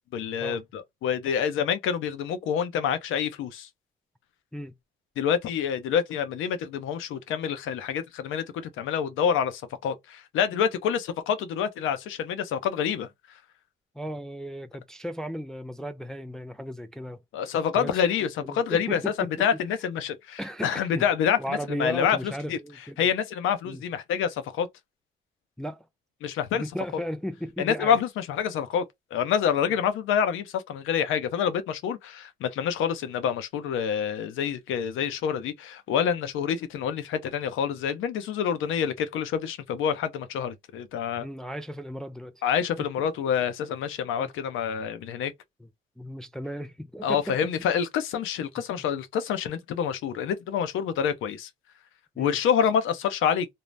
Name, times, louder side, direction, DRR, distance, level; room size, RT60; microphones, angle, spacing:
voice 1, 0.1-3.7 5.2-13.1 17.3-22.6 23.0-24.7 26.2-26.6 27.6-28.8 29.1-41.3 42.4-45.3 47.0-51.5 52.2-53.5, left 8 dB, 85° left, 0.7 m, -27 dB
voice 2, 13.9-17.2 17.7-18.0 18.4-19.5 20.4-21.0 21.4-23.1 23.6-23.8 25.6-25.9 26.5-28.0 29.7-29.8 41.2-42.4 42.8-43.1 44.1-44.3 45.6-45.7 46.0-47.5 48.8-48.9 52.2-52.4, equal, 5° left, 0.3 m, -36 dB
2.6 x 2.0 x 3.2 m
cardioid pair, 90°, 20 cm